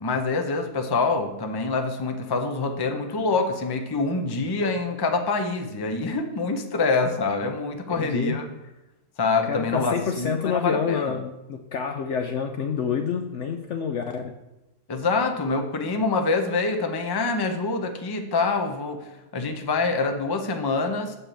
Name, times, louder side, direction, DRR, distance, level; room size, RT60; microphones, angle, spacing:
voice 1, 0.0-8.4 9.2-11.2 14.9-19.1 19.3-21.1, left 3 dB, 25° left, 4 dB, 0.5 m, -25 dB
voice 2, 7.9-8.4 9.5-14.2, left 7 dB, 65° left, 5 dB, 0.8 m, -28 dB
7.4 x 4.4 x 6.9 m, 0.94 s
omnidirectional pair, 1.6 m